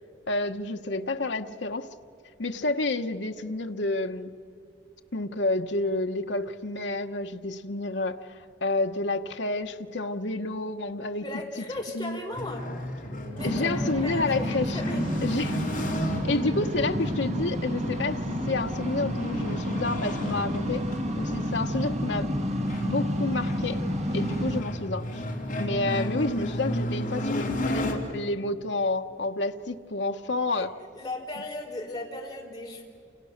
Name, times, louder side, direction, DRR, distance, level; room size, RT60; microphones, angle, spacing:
voice 1, 0.3-1.9 2.4-4.3 5.1-11.2 11.6-11.7 11.9-12.2 13.4-14.8 15.2-15.6 16.2-20.8 21.2-22.3 22.8-23.8 24.1-25.2 25.6-30.7, left 2 dB, 70° left, 6 dB, 1.1 m, -29 dB
voice 2, 11.2-12.6 13.3-15.0 24.1-24.3 30.5-30.7 30.9-32.8, left 2 dB, 20° left, 0 dB, 4.4 m, -37 dB
sound 1, 12.3-27.9, left 1 dB, 45° left, 3.4 m, -34 dB
sound 2, 13.4-24.6, equal, 35° right, 1.7 m, -30 dB
28.5 x 28.5 x 6.6 m, 2.4 s
head